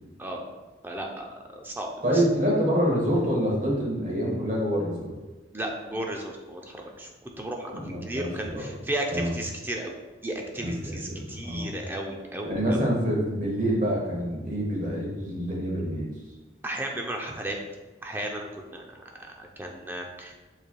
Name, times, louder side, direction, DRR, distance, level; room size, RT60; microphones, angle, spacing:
voice 1, 0.8-2.2 5.5-9.9 10.2-12.8 16.6-17.6 18.0-20.4, right 1 dB, 10° right, 1 dB, 0.4 m, -34 dB
voice 2, 2.0-5.1 7.7-8.7 9.1-9.3 10.6-11.7 12.4-16.1, equal, 45° right, -3 dB, 1.2 m, -26 dB
7.3 x 3.3 x 2.2 m, 1.2 s
head